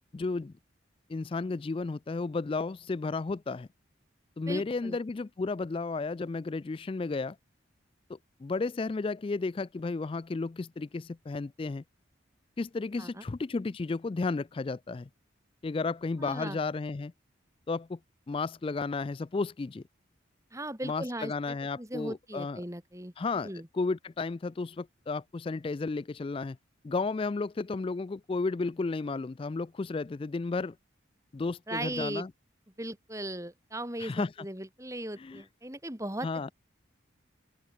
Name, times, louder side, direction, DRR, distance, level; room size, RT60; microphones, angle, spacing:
voice 1, 0.1-0.5 1.1-3.7 4.4-7.4 8.1-11.8 12.6-15.1 15.6-17.1 17.7-18.0 18.3-19.8 20.8-22.6 23.2-23.5 23.7-26.6 26.8-30.8 31.3-32.3 34.0-34.3 35.2-35.4 36.2-36.5, left 3 dB, 25° left, 0.3 m, -33 dB
voice 2, 4.5-5.0 13.0-13.2 16.2-16.6 20.5-23.1 23.4-23.7 31.7-32.3 32.8-36.5, right 1 dB, 15° right, 4.3 m, -38 dB
open air
head